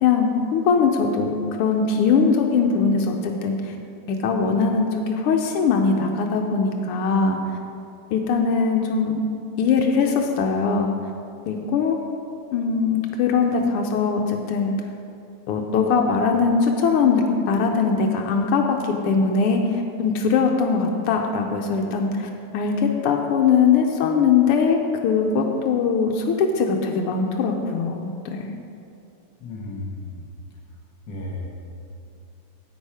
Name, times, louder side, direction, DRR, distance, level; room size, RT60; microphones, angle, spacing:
voice 1, 0.0-3.7 4.1-7.4 8.1-9.2 9.6-10.9 11.5-12.0 12.5-14.7 15.5-24.8 25.0-28.6, left 5 dB, 90° left, 2 dB, 1.7 m, -21 dB
voice 2, 29.4-30.3 31.1-31.5, left 2 dB, 55° left, 0 dB, 2.2 m, -33 dB
9.7 x 8.7 x 4.9 m, 2.6 s
omnidirectional pair, 2.4 m